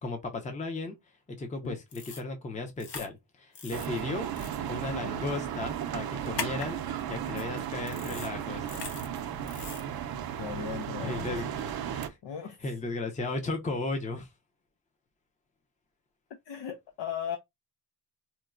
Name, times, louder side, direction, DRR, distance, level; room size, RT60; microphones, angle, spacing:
voice 1, 0.0-1.0 1.4-4.3 4.7-6.8 7.0-8.7 9.6-9.8 11.0-11.5 11.9-12.2 12.6-14.3, left 3 dB, 15° left, 0.6 m, -35 dB
sound 1, 1.9-2.2 2.8-3.1 3.5-3.9 4.4-4.5 6.3-6.7 7.4-7.5 7.9-8.3 8.7-9.1 9.5-9.8, left 5 dB, 65° left, 1.0 m, -39 dB
sound 2, 3.7-12.1, right 9 dB, 60° right, 0.5 m, -35 dB
voice 2, 10.4-11.4 12.2-12.7 16.5-17.4, left 8 dB, 80° left, 0.6 m, -37 dB
4.4 x 2.2 x 2.4 m
cardioid pair, 120°, 43 cm